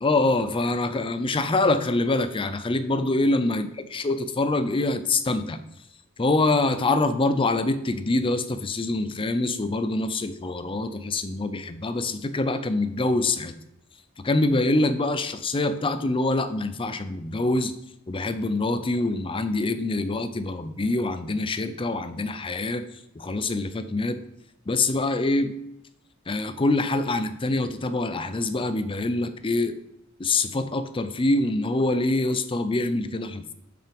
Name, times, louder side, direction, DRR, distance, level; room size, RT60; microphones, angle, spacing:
voice 1, 0.0-5.6 6.2-13.6 14.2-17.7 18.1-22.8 23.2-24.2 24.7-25.6 26.3-29.8 30.2-33.5, left 2 dB, 25° left, 10 dB, 0.5 m, -25 dB
7.5 x 6.1 x 5.2 m, 0.83 s
head